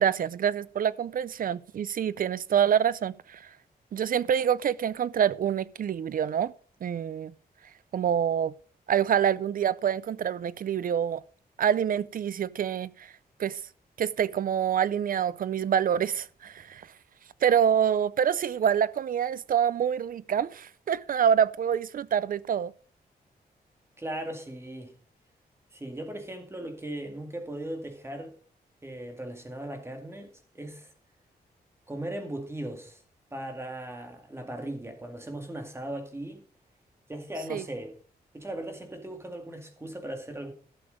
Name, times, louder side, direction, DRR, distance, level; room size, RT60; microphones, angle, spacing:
voice 1, 0.0-3.4 3.9-6.5 6.8-7.3 7.9-8.5 8.9-11.2 11.6-13.1 13.4-13.6 14.0-16.8 17.4-22.7 37.5-37.6, right 8 dB, 60° right, 0.4 m, -26 dB
voice 2, 24.0-24.9 25.7-28.3 28.8-30.9 31.9-33.0 33.3-36.4 37.1-38.0 38.3-40.5, right 1 dB, 15° right, 2.2 m, -38 dB
12.0 x 6.9 x 5.1 m
wide cardioid pair, 135°, 16 cm